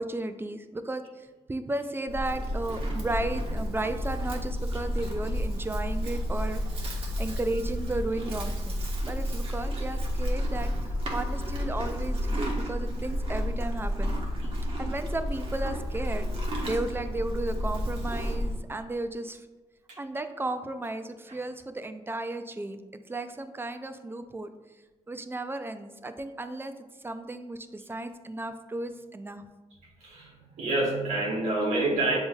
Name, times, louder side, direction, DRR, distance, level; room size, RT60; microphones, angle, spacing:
voice 1, 0.0-10.7 11.1-14.2 14.8-16.3 16.6-19.4 20.0-22.8 23.1-24.5 25.1-26.7 27.0-29.4, right 2 dB, 20° right, 9 dB, 0.3 m, -34 dB
Livestock farm animals working animals, 2.1-18.6, equal, 50° right, 1.0 m, -31 dB
voice 2, 30.6-32.2, right 2 dB, 75° right, -3 dB, 1.0 m, -27 dB
7.0 x 2.7 x 2.3 m, 1.2 s
cardioid pair, 75°, 12 cm